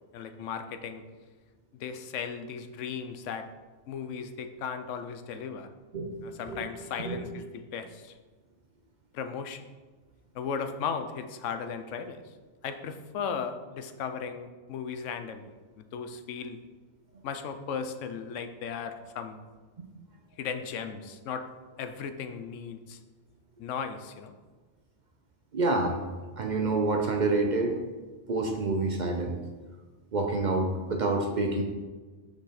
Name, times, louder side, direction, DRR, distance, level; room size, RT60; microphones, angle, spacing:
voice 1, 0.1-1.0 1.7-3.5 3.9-5.7 6.2-8.1 9.1-9.6 10.3-12.2 12.6-16.6 17.2-19.4 20.4-21.4 21.8-23.0 23.6-24.3, left 6 dB, 85° left, 8 dB, 1.0 m, -36 dB
voice 2, 25.5-26.0 26.4-27.8 28.3-29.4 30.1-31.6, right 3 dB, 50° right, 3 dB, 0.6 m, -27 dB
6.3 x 4.9 x 4.1 m, 1.3 s
omnidirectional pair, 1.2 m